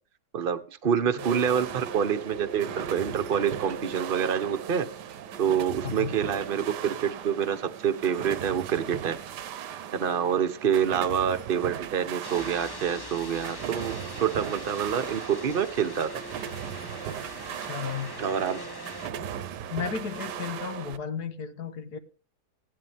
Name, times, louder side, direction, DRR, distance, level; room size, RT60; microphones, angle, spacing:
voice 1, 0.3-4.9 5.4-9.2 10.0-16.1 18.2-18.6, right 8 dB, 40° right, 1.0 m, -27 dB
sound 1, 1.2-21.0, right 8 dB, 80° right, 1.4 m, -38 dB
voice 2, 5.8-6.1 17.6-18.2 19.7-22.0, left 7 dB, 70° left, 1.8 m, -34 dB
sound 2, 12.2-19.1, left 2 dB, 20° left, 0.8 m, -43 dB
16.0 x 11.0 x 3.5 m
omnidirectional pair, 1.8 m